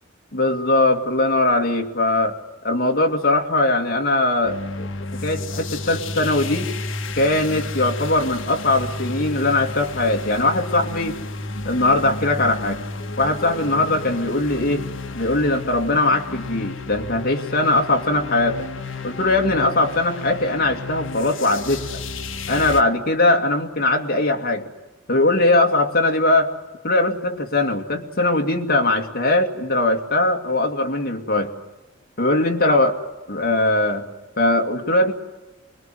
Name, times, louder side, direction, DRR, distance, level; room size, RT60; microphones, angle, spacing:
voice 1, 0.3-2.4 2.6-4.9 5.2-6.7 7.2-11.2 11.6-12.8 13.2-14.8 15.1-18.7 19.0-22.0 22.5-24.6 25.1-26.5 26.8-31.5 32.2-32.9 33.3-34.1 34.4-35.1, left 2 dB, 50° left, 4 dB, 2.5 m, -20 dB
sound 1, 4.4-22.8, left 2 dB, 70° left, 1.7 m, -32 dB
24.5 x 22.0 x 9.3 m, 1.1 s
head